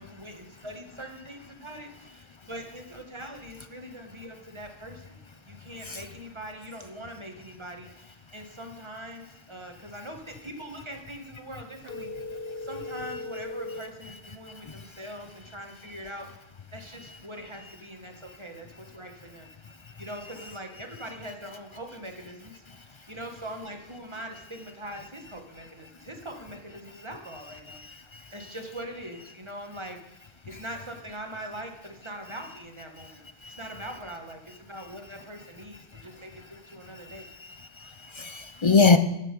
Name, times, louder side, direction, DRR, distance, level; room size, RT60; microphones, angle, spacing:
voice 1, 0.0-12.1 12.6-16.3 16.7-19.5 20.0-22.6 23.1-27.8 28.3-30.0 30.5-37.3, right 1 dB, 25° right, 1.4 m, -42 dB
sound 1, 11.8-13.9, left 2 dB, 60° left, 1.3 m, -37 dB
voice 2, 20.1-20.5 27.7-28.2 30.5-30.6 32.4-32.5 33.9-34.0 37.1-39.0, left 4 dB, 40° left, 0.4 m, -25 dB
12.5 x 7.5 x 5.3 m
omnidirectional pair, 1.1 m